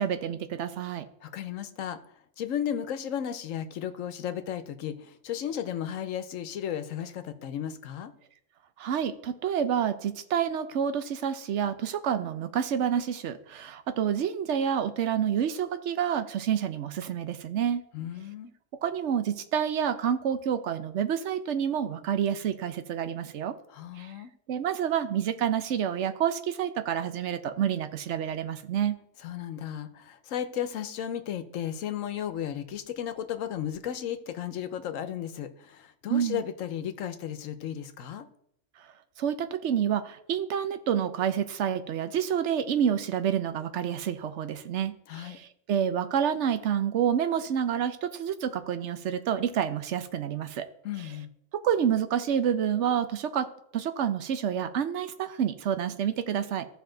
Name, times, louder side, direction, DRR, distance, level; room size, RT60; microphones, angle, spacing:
voice 1, 0.0-1.0 8.8-17.8 18.8-23.5 24.0-24.1 24.5-29.0 36.1-36.4 39.2-50.7 51.5-56.7, right 8 dB, 70° right, 10 dB, 1.0 m, -28 dB
voice 2, 1.2-2.0 2.4-8.1 17.9-18.5 23.7-24.3 29.2-38.3 45.1-45.4 50.8-51.3, left 10 dB, 85° left, 10 dB, 1.1 m, -34 dB
15.0 x 5.0 x 3.9 m, 0.74 s
omnidirectional pair, 1.3 m